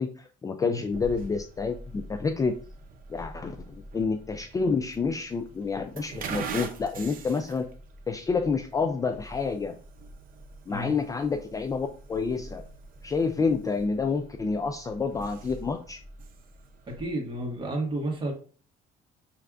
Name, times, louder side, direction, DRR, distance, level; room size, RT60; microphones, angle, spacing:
voice 1, 0.0-2.6 3.1-7.7 8.1-9.8 10.7-12.7 13.0-16.0, left 4 dB, 20° left, 7 dB, 0.3 m, -28 dB
sound 1, 0.9-17.1, right 4 dB, 55° right, 0.7 m, -43 dB
voice 2, 16.9-18.3, right 1 dB, 30° right, 0 dB, 1.6 m, -31 dB
5.9 x 3.3 x 2.5 m, 0.41 s
cardioid pair, 110°, 17 cm